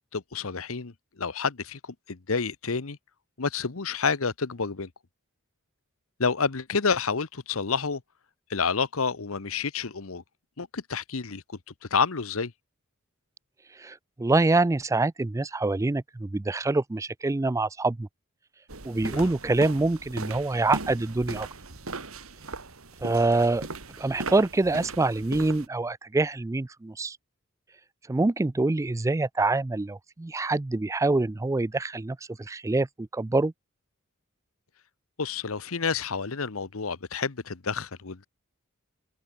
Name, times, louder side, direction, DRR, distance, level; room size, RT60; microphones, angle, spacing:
voice 1, 0.1-1.8 2.1-3.0 3.4-4.9 6.2-8.0 8.5-10.2 10.6-11.4 11.9-12.5 19.1-19.3 35.2-38.3, left 5 dB, 70° left, 1.0 m, -29 dB
voice 2, 13.8-18.1 18.8-21.5 23.0-23.7 24.0-27.2 28.1-33.5, right 2 dB, 15° right, 0.4 m, -25 dB
sound 1, 18.7-25.7, right 3 dB, 75° right, 2.8 m, -38 dB
open air
head